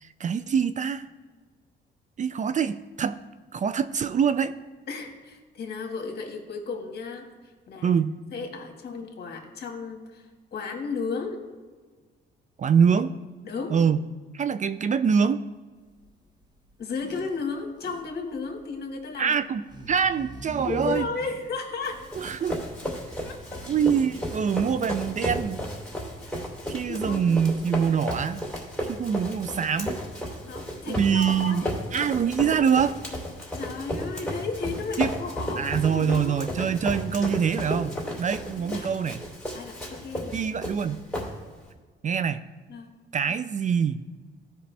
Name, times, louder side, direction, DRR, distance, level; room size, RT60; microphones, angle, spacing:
voice 1, 0.0-1.0 2.2-3.2 3.5-4.6 7.8-8.1 12.6-13.1 13.7-14.0 14.3-15.4 19.2-21.1 22.2-22.6 23.7-25.6 26.7-28.4 28.9-30.0 30.9-31.6 31.9-33.0 35.0-35.1 35.6-39.2 40.3-41.0 42.0-42.4 43.1-44.0, right 7 dB, 40° right, 13 dB, 0.4 m, -24 dB
voice 2, 4.9-7.3 7.7-8.0 8.3-11.4 13.4-13.8 16.8-19.4 20.7-22.0 23.2-23.6 26.2-26.5 26.9-27.4 30.4-31.8 33.5-36.5 38.6-38.9 39.5-40.4 42.7-42.9, left 4 dB, 55° left, 3 dB, 1.7 m, -34 dB
sound 1, 15.8-25.9, right 1 dB, 20° right, 1.2 m, -44 dB
Run, 21.8-41.7, equal, 5° left, 2.9 m, -34 dB
15.0 x 5.2 x 3.3 m, 1.4 s
cardioid pair, 90°, 20 cm